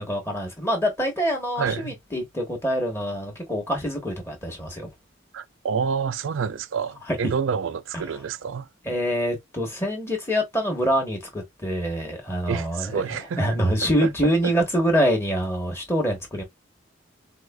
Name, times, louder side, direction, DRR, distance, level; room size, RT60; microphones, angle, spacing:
voice 1, 0.0-4.9 7.1-7.2 7.9-8.0 8.8-16.4, equal, 10° left, 1.1 m, -25 dB
voice 2, 1.6-1.9 5.3-8.7 12.5-13.4 14.0-14.3, right 6 dB, 75° right, 0.4 m, -28 dB
4.7 x 2.4 x 2.3 m
head